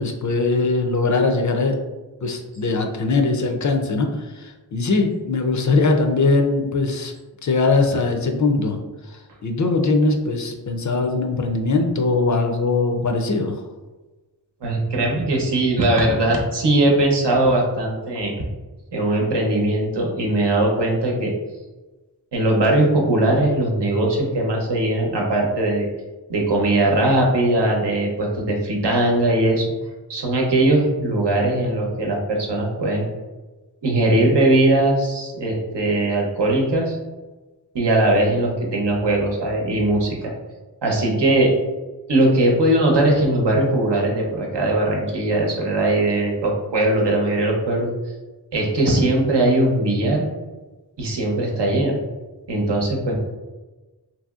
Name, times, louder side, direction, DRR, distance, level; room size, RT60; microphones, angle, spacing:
voice 1, 0.0-1.8 2.2-7.1 7.4-8.8 9.1-13.6, left 3 dB, 45° left, 3 dB, 0.4 m, -21 dB
voice 2, 14.6-18.3 18.9-21.3 22.3-25.9 26.3-29.7 30.1-33.0 33.8-37.0 37.7-40.3 40.8-41.5 42.1-47.9 48.5-50.3 51.0-52.0 52.5-53.2, right 1 dB, 75° right, -1 dB, 0.8 m, -20 dB
2.9 x 2.7 x 2.3 m, 1.2 s
wide cardioid pair, 60°, 42 cm